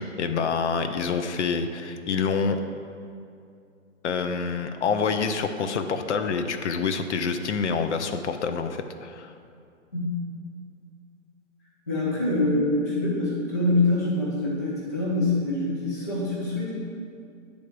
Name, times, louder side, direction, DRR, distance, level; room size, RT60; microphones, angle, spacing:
voice 1, 0.0-2.7 4.0-9.3, left 5 dB, 60° left, 8 dB, 0.6 m, -27 dB
voice 2, 11.9-16.7, left 2 dB, 15° left, -5 dB, 0.3 m, -25 dB
9.0 x 3.5 x 5.1 m, 2.4 s
hypercardioid pair, 140°, 40 cm